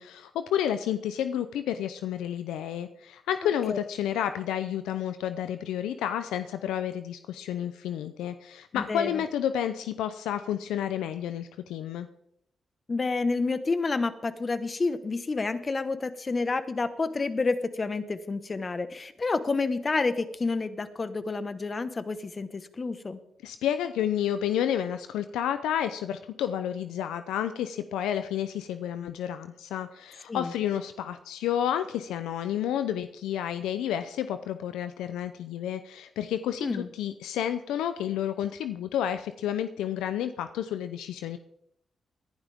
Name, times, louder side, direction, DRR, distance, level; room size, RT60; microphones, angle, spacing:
voice 1, 0.0-12.1 23.4-41.4, left 10 dB, 90° left, 10 dB, 0.6 m, -30 dB
voice 2, 8.7-9.2 12.9-23.2 30.3-30.5 36.6-36.9, left 3 dB, 40° left, 11 dB, 1.3 m, -29 dB
20.5 x 11.5 x 3.6 m, 0.76 s
supercardioid pair, 50°, 0 cm